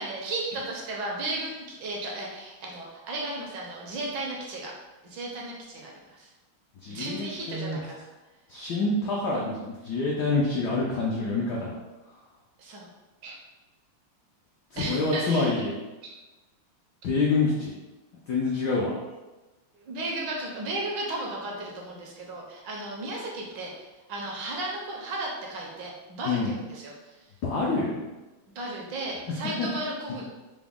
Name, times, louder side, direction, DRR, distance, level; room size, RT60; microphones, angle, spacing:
voice 1, 0.0-4.7 5.0-6.3 6.9-8.0 12.6-12.9 13.2-13.3 14.8-15.5 16.0-16.2 19.7-27.2 28.5-30.2, right 2 dB, 70° right, -1 dB, 1.2 m, -35 dB
voice 2, 6.8-7.8 8.5-11.7 14.7-15.7 17.0-17.8 18.3-19.0 26.3-26.5 27.4-28.0 29.3-29.7, left 3 dB, 80° left, -4 dB, 0.9 m, -27 dB
3.9 x 2.0 x 3.5 m, 1.1 s
omnidirectional pair, 2.4 m